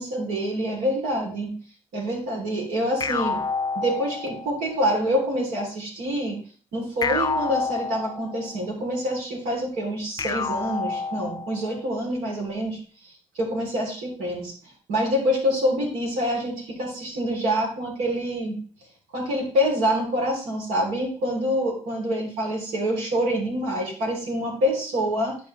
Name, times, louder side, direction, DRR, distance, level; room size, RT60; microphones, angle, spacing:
voice 1, 0.0-1.5 1.9-3.4 3.8-6.4 6.7-14.5 14.9-18.6 19.1-25.4, equal, 90° right, -1 dB, 3.6 m, -26 dB
sound 1, 3.0-4.6 7.0-8.6 10.2-11.7, left 4 dB, 30° left, 0.5 m, -28 dB
11.5 x 4.6 x 3.4 m, 0.43 s
supercardioid pair, 65°, 14 cm